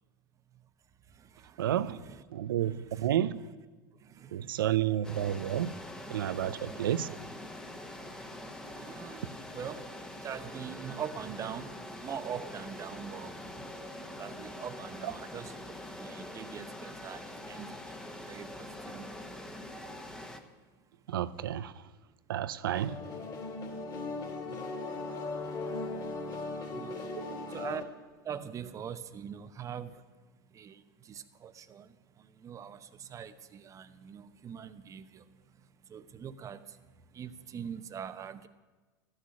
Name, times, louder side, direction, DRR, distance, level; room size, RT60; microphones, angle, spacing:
voice 1, 1.0-2.2 2.6-3.1 3.4-3.5 3.9-5.2 5.7-6.8 7.4-15.6 16.0-19.7 20.0-20.7 21.0-21.2 21.8-21.9 24.0-38.5, right 8 dB, 30° right, 0.8 m, -45 dB
voice 2, 1.6-2.0 2.3-3.4 4.3-5.7 6.1-7.1 21.1-21.7 22.3-23.0 27.2-27.5, right 11 dB, 85° right, 0.5 m, -31 dB
sound 1, 5.0-20.4, left 1 dB, 5° left, 1.1 m, -44 dB
sound 2, 22.7-27.8, left 3 dB, 40° left, 2.7 m, -38 dB
12.5 x 6.5 x 9.5 m
hypercardioid pair, 105°, 11 cm